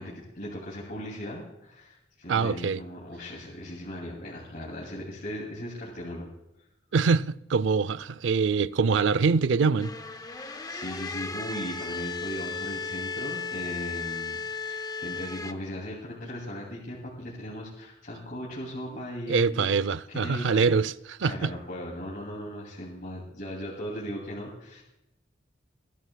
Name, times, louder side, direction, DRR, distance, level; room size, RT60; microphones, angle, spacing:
voice 1, 0.0-6.3 10.3-14.4 14.7-19.7 20.1-20.6 21.2-24.8, equal, 50° left, 2.6 m, -38 dB
voice 2, 2.3-2.8 6.9-9.9 19.3-21.5, right 5 dB, 75° right, 0.5 m, -24 dB
sound 1, 9.8-15.5, left 4 dB, 20° left, 0.6 m, -35 dB
21.0 x 13.0 x 2.3 m
head